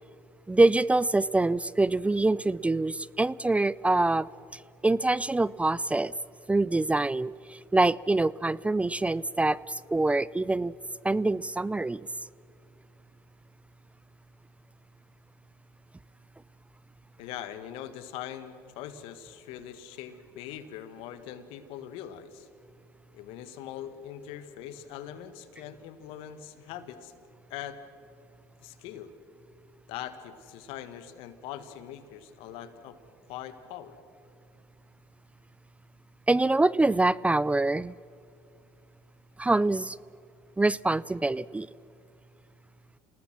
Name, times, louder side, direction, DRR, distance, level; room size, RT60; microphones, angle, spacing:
voice 1, 0.5-6.1 6.5-10.8 11.0-12.0 36.3-38.0 39.4-40.0 40.6-41.7, right 2 dB, 15° right, 21 dB, 0.4 m, -25 dB
voice 2, 17.2-22.5 23.1-27.1 27.5-27.8 28.6-29.1 29.9-33.0 33.3-34.0, left 10 dB, 75° left, 11 dB, 1.7 m, -42 dB
27.5 x 19.0 x 6.1 m, 2.6 s
hypercardioid pair, 70°, 10 cm